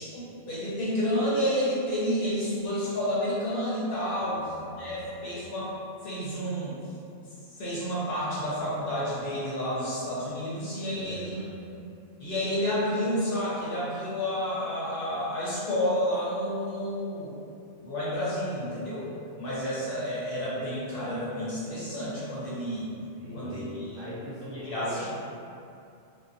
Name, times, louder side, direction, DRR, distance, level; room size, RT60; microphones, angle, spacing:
voice 1, 0.0-4.5 4.8-5.7 6.0-6.8 7.6-11.4 11.7-11.8 12.2-17.3 17.8-19.1 19.4-22.9 23.3-24.0 24.5-25.0, equal, 60° left, -9 dB, 0.7 m, -30 dB
voice 2, 4.2-5.2 10.9-11.5 23.2-25.0, equal, 85° right, -8 dB, 1.1 m, -41 dB
2.4 x 2.3 x 2.4 m, 2.6 s
omnidirectional pair, 1.3 m